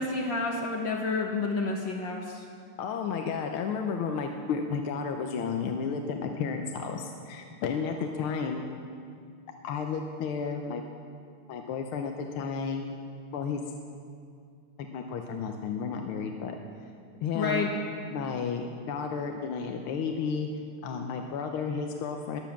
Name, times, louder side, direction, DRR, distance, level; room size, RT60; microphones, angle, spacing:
voice 1, 0.0-2.4 17.3-17.7, left 3 dB, 65° left, -1 dB, 1.8 m, -29 dB
voice 2, 2.8-8.7 9.6-10.8 11.5-13.0 13.3-13.6 14.8-16.5 17.2-17.7 18.1-20.5 20.8-22.4, left 5 dB, 85° left, 4 dB, 1.7 m, -32 dB
21.0 x 7.2 x 7.2 m, 2.4 s
omnidirectional pair, 2.3 m